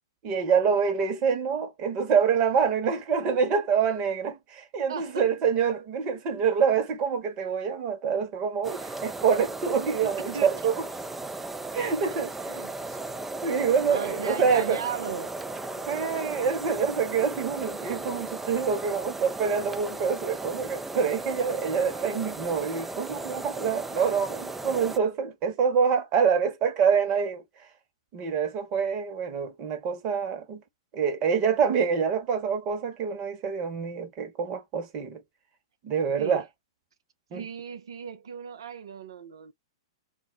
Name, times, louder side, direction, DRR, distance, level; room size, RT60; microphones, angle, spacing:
voice 1, 0.2-8.7 9.0-10.8 11.7-12.5 13.4-14.8 15.9-27.4 28.1-30.6 30.9-35.2 35.8-36.4 37.3-37.5, right 6 dB, 35° right, 1.1 m, -26 dB
voice 2, 4.9-5.3 8.7-9.0 10.0-10.5 12.5-13.0 13.9-15.3 36.2-36.4 37.3-39.5, right 7 dB, 70° right, 0.5 m, -37 dB
sound 1, 8.6-25.0, right 2 dB, 5° right, 0.3 m, -36 dB
2.5 x 2.0 x 3.8 m
figure-of-eight pair, 110°, 3 cm